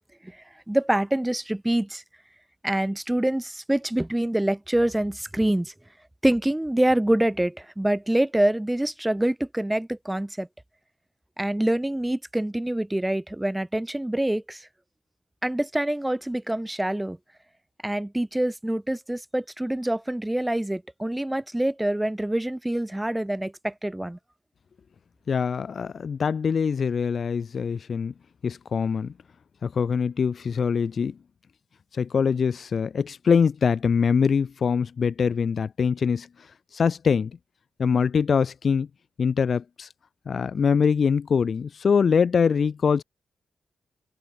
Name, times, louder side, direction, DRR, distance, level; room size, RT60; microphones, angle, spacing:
voice 1, 0.7-2.0 2.6-5.7 6.2-10.5 11.4-14.7 15.4-17.2 17.8-24.2, right 1 dB, 10° right, 0.4 m, -25 dB
voice 2, 25.3-28.1 28.4-29.1 29.6-31.2 31.9-36.3 36.7-37.3 37.8-38.9 39.2-39.9 40.3-43.0, left 6 dB, 50° left, 0.6 m, -23 dB
wide cardioid pair, 120°, 0 cm